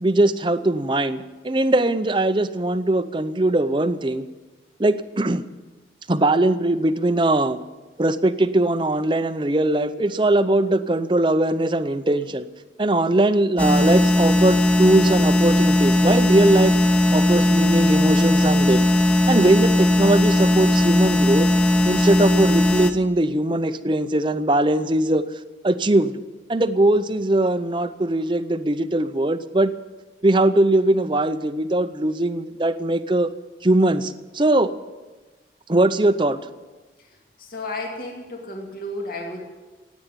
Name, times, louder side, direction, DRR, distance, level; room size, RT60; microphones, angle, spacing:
voice 1, 0.0-4.3 4.8-5.4 6.1-7.6 8.0-12.4 12.8-18.8 19.3-21.5 21.9-25.2 25.6-26.1 26.5-29.7 30.2-33.3 33.6-34.7 35.7-36.4, right 1 dB, 25° right, 12 dB, 0.7 m, -20 dB
sound 1, 13.6-22.9, left 1 dB, 10° left, 0.8 m, -18 dB
voice 2, 37.4-39.5, left 1 dB, 55° left, 0 dB, 2.5 m, -32 dB
17.0 x 9.4 x 9.0 m, 1.2 s
head